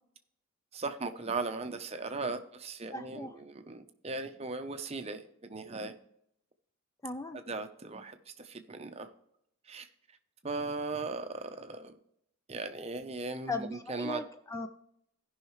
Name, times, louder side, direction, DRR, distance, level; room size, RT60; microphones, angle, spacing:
voice 1, 0.7-6.0 7.3-9.1 9.6-9.9 10.4-12.0 12.5-14.2, right 3 dB, 30° right, 8 dB, 0.7 m, -38 dB
voice 2, 2.9-3.3 7.0-7.4 13.5-14.7, left 2 dB, 15° left, 8 dB, 0.3 m, -38 dB
16.5 x 5.6 x 3.1 m, 0.75 s
head